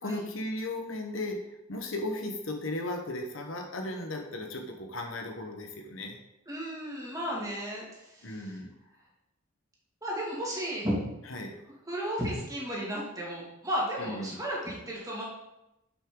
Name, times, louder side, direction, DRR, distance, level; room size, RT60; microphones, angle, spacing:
voice 1, 0.0-1.4 1.7-6.2 8.2-8.7 11.3-11.6 14.0-14.4, left 1 dB, 65° left, 3 dB, 1.1 m, -36 dB
voice 2, 6.5-8.5 10.0-11.0 11.9-15.2, equal, 15° right, -4 dB, 2.2 m, -34 dB
8.4 x 5.8 x 3.8 m, 0.91 s
head